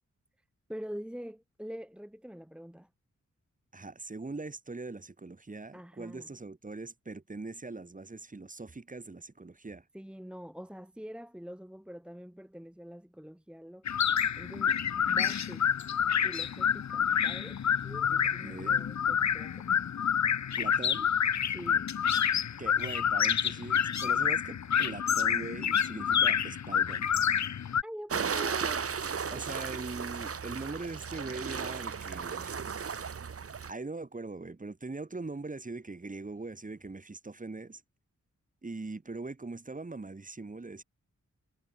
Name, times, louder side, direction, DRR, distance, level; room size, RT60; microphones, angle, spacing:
voice 1, 0.7-2.9 5.7-6.3 9.9-13.9 14.4-15.7 16.2-19.7 21.5-21.9 27.8-29.0 29.3-29.4, equal, 5° right, 1.7 m, -45 dB
voice 2, 3.7-9.8 18.4-18.9 20.6-21.1 22.6-27.1 29.3-32.6 33.7-37.8 38.6-40.8, right 3 dB, 25° right, 3.8 m, -41 dB
sound 1, 13.9-27.8, left 8 dB, 65° left, 1.1 m, -28 dB
sound 2, 28.1-33.7, right 6 dB, 50° right, 1.6 m, -35 dB
wide cardioid pair, 140°, 30 cm